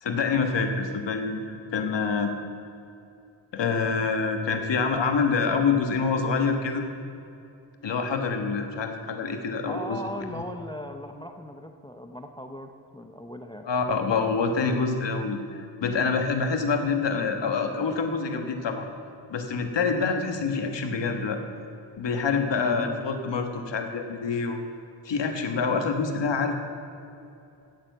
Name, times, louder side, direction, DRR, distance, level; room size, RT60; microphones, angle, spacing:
voice 1, 0.0-2.3 3.5-6.8 7.8-10.0 13.6-15.4 15.8-18.9 19.3-21.4 22.0-24.6 25.0-26.5, left 5 dB, 85° left, 5 dB, 1.4 m, -26 dB
voice 2, 9.7-13.7 22.5-23.0, left 1 dB, 10° left, 6 dB, 0.5 m, -37 dB
15.0 x 7.1 x 7.9 m, 2.7 s
wide cardioid pair, 170°, 42 cm